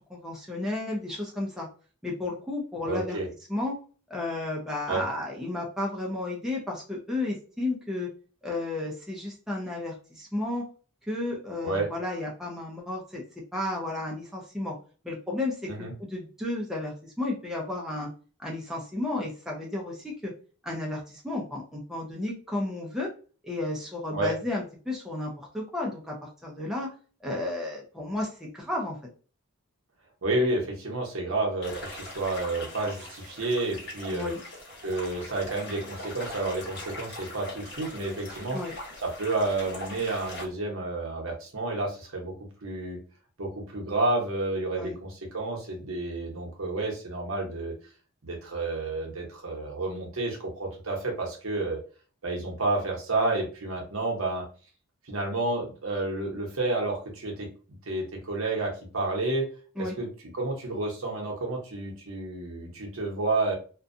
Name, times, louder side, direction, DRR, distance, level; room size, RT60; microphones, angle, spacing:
voice 1, 0.1-1.7 2.0-3.2 3.5-3.8 4.1-8.1 8.4-10.7 11.1-13.2 13.5-14.7 15.0-18.1 18.4-20.3 20.6-23.1 23.4-26.9 27.2-29.0 34.1-34.4 38.5-38.7 44.7-45.0 59.8-60.0, left 2 dB, ahead, -2 dB, 0.5 m, -33 dB
voice 2, 2.8-3.3 4.9-5.0 11.6-11.9 15.7-15.9 24.1-24.3 30.2-34.3 34.8-38.6 39.0-42.3 42.6-43.0 43.4-47.7 48.2-51.8 52.2-54.4 55.1-57.5 57.9-59.5 59.8-60.1 60.3-63.5, right 2 dB, 70° right, 0 dB, 0.9 m, -30 dB
sound 1, 31.6-40.4, left 1 dB, 50° left, 1.1 m, -41 dB
2.5 x 2.2 x 2.6 m, 0.38 s
head